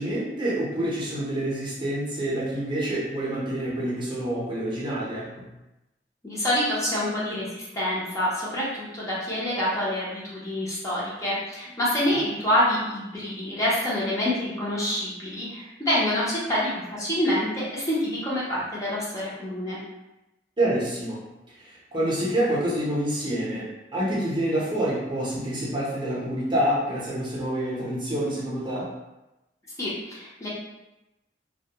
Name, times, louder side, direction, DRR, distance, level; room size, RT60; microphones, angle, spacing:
voice 1, 0.0-5.5 20.6-21.2 21.5-28.9, right 1 dB, 30° right, -6 dB, 0.6 m, -27 dB
voice 2, 6.2-19.8 29.8-30.5, left 1 dB, 20° left, -7 dB, 0.6 m, -27 dB
2.1 x 2.0 x 2.8 m, 0.96 s
head